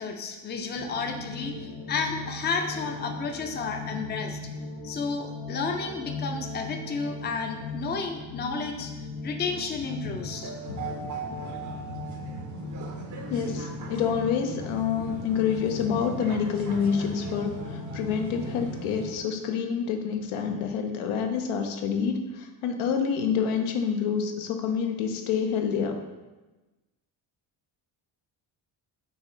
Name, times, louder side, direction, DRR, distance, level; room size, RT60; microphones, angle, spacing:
voice 1, 0.0-4.4 4.8-10.5, left 4 dB, 25° left, 4 dB, 0.4 m, -32 dB
sound 1, 0.7-19.2, left 3 dB, 60° left, 1.1 m, -39 dB
sound 2, 10.2-19.1, right 3 dB, 40° right, 0.5 m, -39 dB
voice 2, 10.7-11.7 12.0-12.1 13.3-26.0, left 7 dB, 85° left, 4 dB, 0.6 m, -28 dB
4.1 x 2.4 x 3.8 m, 1.2 s
cardioid pair, 75°, 48 cm